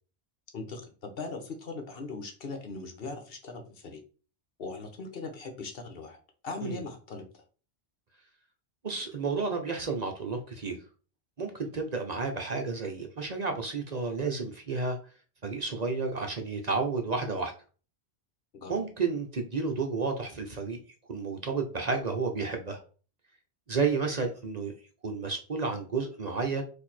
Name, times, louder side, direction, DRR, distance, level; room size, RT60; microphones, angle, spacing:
voice 1, 0.5-4.0 4.6-6.2 6.4-7.4 18.5-18.7, left 3 dB, 65° left, 4 dB, 1.2 m, -39 dB
voice 2, 8.8-10.8 11.4-15.0 15.4-17.5 18.7-20.8 21.1-22.8 23.7-24.7 25.0-26.6, right 4 dB, 45° right, 3 dB, 0.8 m, -31 dB
4.6 x 2.7 x 4.2 m, 0.37 s
omnidirectional pair, 1.1 m